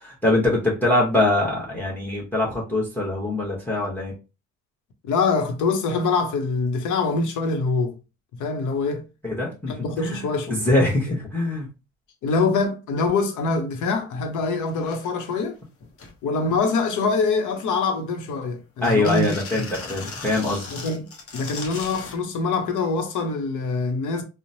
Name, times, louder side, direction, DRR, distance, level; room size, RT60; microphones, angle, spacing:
voice 1, 0.0-4.1 9.2-9.7 10.0-10.2 10.5-11.7 18.8-20.7, left 2 dB, 5° left, 0.9 m, -23 dB
voice 2, 5.0-8.0 8.4-9.1 9.7-10.6 12.2-15.6 16.2-19.6 20.7-24.2, left 4 dB, 80° left, 0.7 m, -24 dB
sound 1, 14.3-14.4 14.7-15.3 15.8-16.1 16.6-17.1 17.5-18.3 18.8-22.2 23.2-23.3, left 4 dB, 50° left, 0.8 m, -38 dB
2.9 x 2.1 x 2.6 m
cardioid pair, 90°, 30 cm